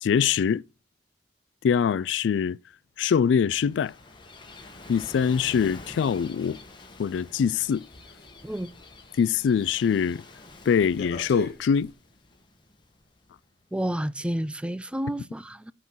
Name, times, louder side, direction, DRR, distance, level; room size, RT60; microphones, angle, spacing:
voice 1, 0.0-0.6 1.6-2.6 3.0-3.9 4.9-6.6 7.0-7.8 9.2-10.2 10.7-11.9, left 7 dB, 85° left, 0.3 m, -23 dB
Gull seagull / Waves surf, 3.0-13.6, left 2 dB, 25° left, 1.4 m, -48 dB
sound 1, 6.4-9.2 9.5-9.9 10.2-11.9, right 1 dB, 60° left, 1.5 m, -42 dB
voice 2, 13.7-15.7, right 1 dB, 5° right, 0.4 m, -30 dB
9.3 x 3.8 x 6.1 m
head